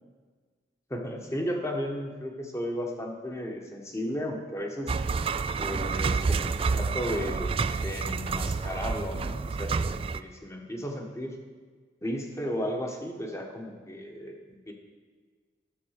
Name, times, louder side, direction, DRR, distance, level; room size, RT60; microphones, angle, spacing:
voice 1, 0.9-4.9 5.6-7.6 7.8-11.4 12.0-14.7, equal, 15° left, 2 dB, 1.4 m, -34 dB
sound 1, 4.9-10.2, right 4 dB, 30° right, 0.3 m, -29 dB
12.0 x 6.9 x 6.6 m, 1.5 s
head